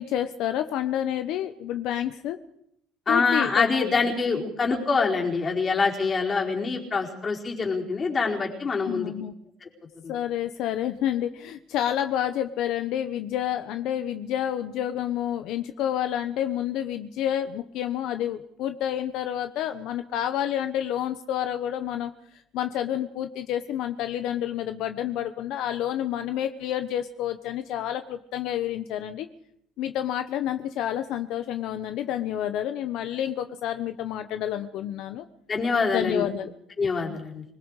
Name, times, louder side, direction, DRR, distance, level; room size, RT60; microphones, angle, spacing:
voice 1, 0.0-2.4 3.1-3.7 8.9-9.3 10.1-29.3 29.8-35.3 35.9-36.5 37.1-37.2, left 11 dB, 70° left, 9 dB, 1.0 m, -29 dB
voice 2, 3.1-9.1 10.0-10.1 35.5-36.3 36.8-37.4, left 4 dB, 30° left, -1 dB, 4.7 m, -25 dB
25.5 x 20.5 x 4.9 m, 0.76 s
cardioid pair, 135°, 0 cm